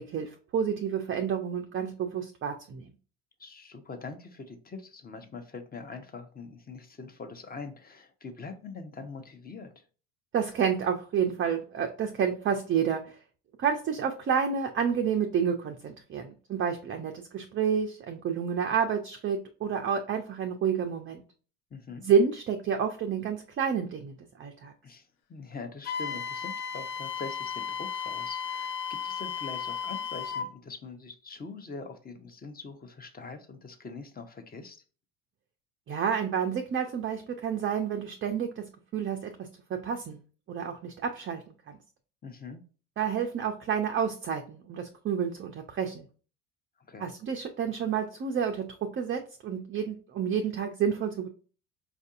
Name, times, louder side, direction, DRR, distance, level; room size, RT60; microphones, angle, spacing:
voice 1, 0.1-2.9 10.3-13.0 13.6-21.2 22.0-24.7 35.9-40.2 40.5-41.8 43.0-46.1 47.0-51.3, right 7 dB, 25° right, 0.5 m, -29 dB
voice 2, 3.4-9.8 21.7-22.0 24.8-34.8 42.2-42.6 46.9-47.1, left 4 dB, 20° left, 0.7 m, -43 dB
Wind instrument woodwind instrument, 25.8-30.5, left 7 dB, 55° left, 0.7 m, -34 dB
4.6 x 2.6 x 2.4 m
hypercardioid pair, 80°, 47 cm